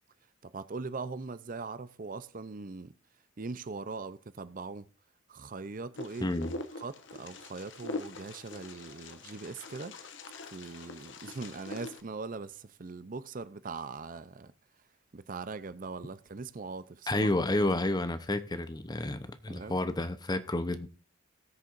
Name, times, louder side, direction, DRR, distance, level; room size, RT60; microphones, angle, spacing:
voice 1, 0.4-2.9 3.4-4.9 5.3-6.3 6.8-10.0 10.4-14.5 15.1-17.3 19.5-19.8, right 4 dB, 40° right, 0.6 m, -41 dB
Wind, 6.0-12.0, left 3 dB, 65° left, 1.2 m, -43 dB
voice 2, 17.1-20.9, left 1 dB, 20° left, 0.7 m, -30 dB
19.0 x 6.7 x 2.5 m
head